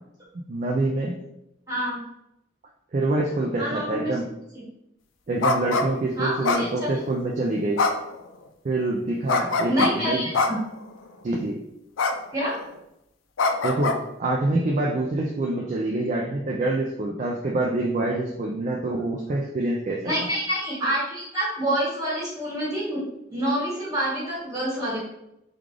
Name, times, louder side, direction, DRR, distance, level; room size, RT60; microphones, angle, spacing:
voice 1, 0.3-1.2 2.9-4.3 5.3-7.8 8.6-10.3 11.2-11.6 13.6-20.3, right 2 dB, 40° right, -1 dB, 0.3 m, -26 dB
voice 2, 1.7-2.0 3.6-4.1 4.5-4.6 6.1-6.7 9.7-10.6 12.3-12.5 20.0-23.0 23.3-25.0, right 1 dB, 15° right, -6 dB, 1.4 m, -27 dB
sound 1, 5.4-5.9 6.4-7.1 7.8-8.2 9.3-9.9 10.3-10.8 12.0-12.2 12.5-12.7 13.4-14.0, left 3 dB, 90° left, 0.4 m, -23 dB
3.6 x 2.4 x 3.2 m, 0.84 s
head